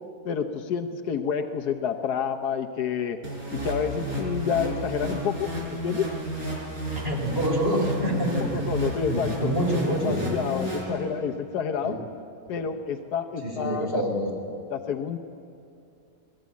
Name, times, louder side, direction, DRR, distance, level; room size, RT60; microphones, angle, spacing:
voice 1, 0.2-3.2 3.6-6.1 8.5-9.5 9.9-12.0 12.5-14.0 14.7-15.2, left 7 dB, 80° left, 4 dB, 1.5 m, -29 dB
sound 1, 3.2-11.4, equal, 65° right, 4.8 m, -32 dB
voice 2, 6.9-8.6 9.1-10.3 11.8-12.0 13.4-14.6, right 1 dB, 35° right, 0 dB, 4.2 m, -27 dB
22.5 x 14.0 x 8.3 m, 2.7 s
omnidirectional pair, 1.7 m